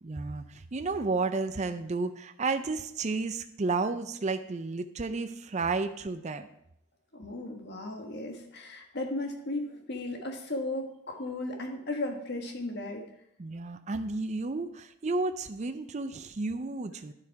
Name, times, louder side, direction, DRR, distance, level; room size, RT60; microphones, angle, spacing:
voice 1, 0.0-6.5 13.4-17.1, right 3 dB, 35° right, 9 dB, 0.4 m, -32 dB
voice 2, 7.1-13.0, left 2 dB, 50° left, 3 dB, 1.5 m, -35 dB
10.5 x 7.3 x 4.7 m, 0.78 s
head